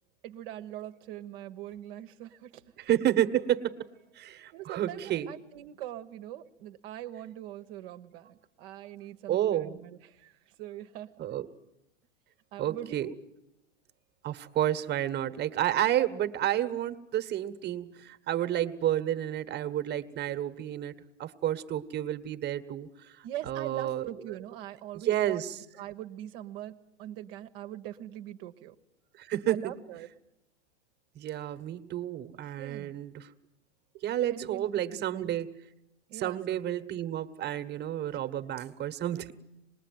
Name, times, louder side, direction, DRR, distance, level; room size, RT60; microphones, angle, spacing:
voice 1, 0.2-2.7 3.0-3.1 4.5-11.3 12.5-13.2 23.2-25.4 25.8-28.7 29.5-30.1 32.6-33.0 34.3-35.4 36.1-36.8, right 12 dB, 50° right, 7 dB, 1.2 m, -42 dB
voice 2, 2.8-3.9 4.1-5.3 9.3-9.8 11.2-11.5 12.6-13.1 14.2-20.9 21.2-24.1 24.9-25.6 29.2-29.6 31.1-33.3 34.0-35.5 36.1-39.3, right 12 dB, 30° right, 10 dB, 1.5 m, -30 dB
26.0 x 20.5 x 9.4 m, 0.91 s
hypercardioid pair, 115°, 35 cm